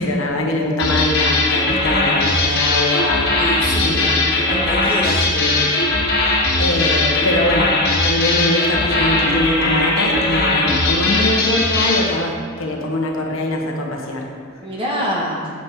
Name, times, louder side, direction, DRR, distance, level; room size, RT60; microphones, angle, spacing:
voice 1, 0.0-3.4 3.8-4.3 5.3-5.8 6.2-14.3, left 1 dB, 80° left, 1 dB, 1.2 m, -23 dB
sound 1, 0.8-12.1, left 2 dB, 50° left, 1.7 m, -19 dB
voice 2, 3.4-4.2 4.5-5.2 14.6-15.5, equal, 25° right, -3 dB, 1.4 m, -25 dB
8.4 x 7.8 x 3.7 m, 2.1 s
head